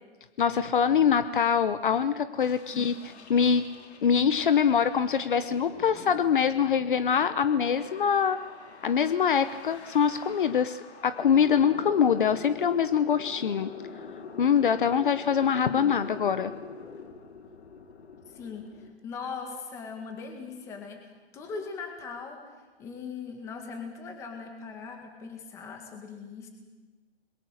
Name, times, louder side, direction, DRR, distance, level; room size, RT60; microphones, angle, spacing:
voice 1, 0.4-2.9 3.3-3.7 4.0-8.4 8.8-13.7 14.4-16.5, left 7 dB, 50° left, 12 dB, 1.0 m, -24 dB
sound 1, 2.4-18.9, left 5 dB, 85° left, 3.4 m, -45 dB
voice 2, 18.3-21.0 21.3-22.4 22.8-26.5, left 5 dB, 10° left, 4 dB, 2.0 m, -40 dB
29.0 x 22.0 x 6.5 m, 1.3 s
hypercardioid pair, 180°, 32 cm